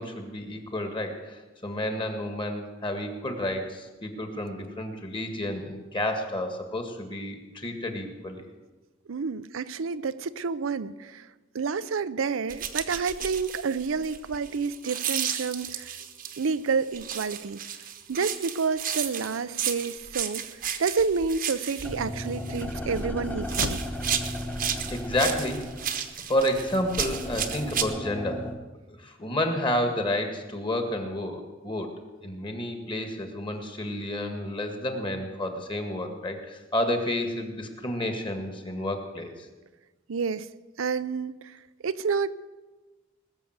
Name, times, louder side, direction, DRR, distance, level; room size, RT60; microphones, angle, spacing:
voice 1, 0.0-8.5 24.9-28.5 29.0-31.9 32.2-39.5, left 1 dB, 25° left, 5 dB, 1.8 m, -30 dB
voice 2, 9.1-11.3 11.5-16.0 16.4-17.6 18.1-20.4 20.8-23.8 40.1-40.5 40.8-41.6 41.8-42.3, right 5 dB, 80° right, 14 dB, 0.5 m, -29 dB
sound 1, 12.5-16.5 16.9-23.1 23.4-27.8, right 9 dB, 45° right, 1.0 m, -33 dB
sound 2, 20.8-21.2 21.6-21.7 23.4-24.3, left 4 dB, 55° left, 0.5 m, -37 dB
sound 3, 21.8-28.5, left 1 dB, 10° left, 1.2 m, -36 dB
20.0 x 6.9 x 8.0 m, 1.2 s
head